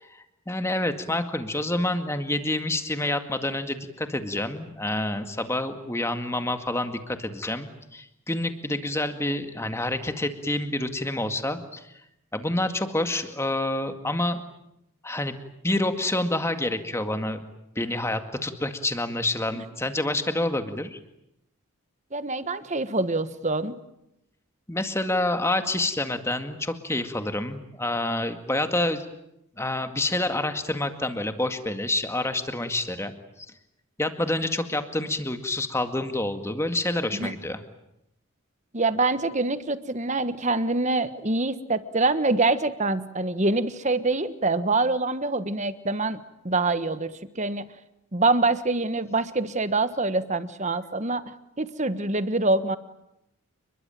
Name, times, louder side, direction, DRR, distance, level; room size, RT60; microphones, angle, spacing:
voice 1, 0.1-11.9 12.3-14.4 15.0-15.4 15.6-17.4 17.8-21.0 24.7-29.1 29.6-33.1 34.0-37.6, left 1 dB, 10° left, 8 dB, 2.0 m, -28 dB
voice 2, 22.1-23.8 37.2-37.3 38.7-46.2 46.4-47.7 48.1-51.3 51.6-52.8, right 3 dB, 30° right, 12 dB, 1.4 m, -25 dB
29.5 x 21.5 x 9.2 m, 0.83 s
head